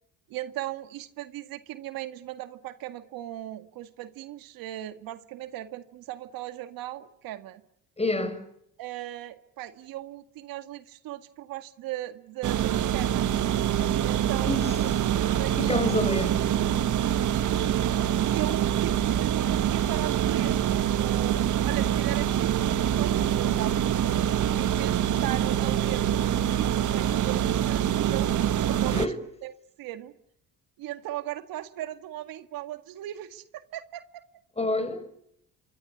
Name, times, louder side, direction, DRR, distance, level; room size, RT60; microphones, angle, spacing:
voice 1, 0.3-7.6 8.8-13.3 14.0-15.9 16.4-17.2 18.2-26.2 26.5-29.1 29.4-29.5 29.8-30.1 30.8-34.2, right 14 dB, 80° right, 2.0 m, -38 dB
voice 2, 8.0-8.4 14.5-14.8 15.6-16.4 28.9-29.2 34.6-35.1, left 2 dB, 15° left, 6.5 m, -28 dB
sound 1, 12.4-29.1, right 10 dB, 60° right, 1.5 m, -25 dB
27.5 x 24.0 x 8.5 m
supercardioid pair, 70°, 35 cm